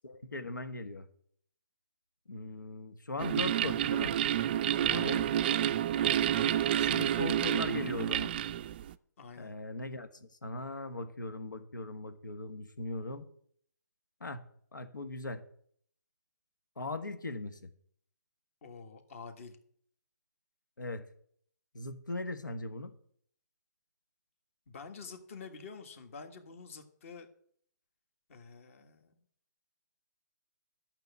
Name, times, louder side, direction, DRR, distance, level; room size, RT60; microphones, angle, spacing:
voice 1, 0.0-1.1 2.3-4.2 4.8-5.3 6.9-8.4 9.4-13.2 14.2-14.4 14.7-15.4 16.8-17.7 20.8-21.1 21.7-22.9, left 2 dB, 85° left, 9 dB, 1.5 m, -39 dB
sound 1, 3.2-8.9, right 11 dB, 30° right, 0.4 m, -29 dB
voice 2, 4.9-5.8 6.3-7.0 9.2-9.5 18.6-19.6 24.7-27.3 28.3-29.1, left 5 dB, 45° left, 7 dB, 1.6 m, -48 dB
12.0 x 6.1 x 8.1 m, 0.62 s
hypercardioid pair, 150°, 10 cm